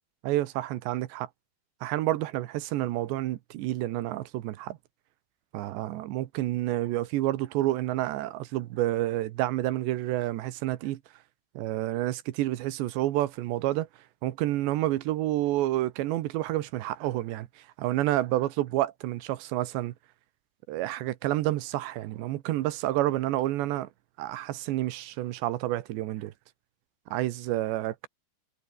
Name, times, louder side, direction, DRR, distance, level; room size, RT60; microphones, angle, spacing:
voice 1, 0.2-1.3 1.8-4.8 5.5-11.0 11.6-13.9 14.2-17.5 17.8-19.9 20.7-23.9 24.2-26.3 27.1-28.1, right 15 dB, 75° right, 3.2 m, -29 dB
omnidirectional pair, 5.4 m